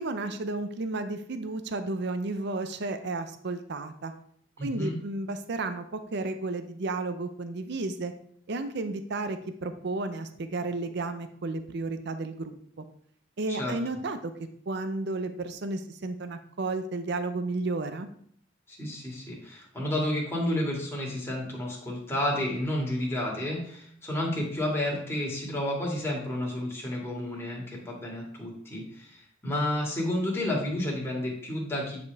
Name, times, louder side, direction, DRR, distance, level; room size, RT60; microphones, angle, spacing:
voice 1, 0.0-4.1 4.6-8.1 8.5-12.6 13.4-14.3 14.7-18.1, right 2 dB, 60° right, 9 dB, 0.6 m, -32 dB
voice 2, 4.6-4.9 13.5-13.8 18.7-32.0, left 1 dB, 15° left, -3 dB, 2.3 m, -31 dB
9.3 x 5.2 x 3.5 m, 0.64 s
head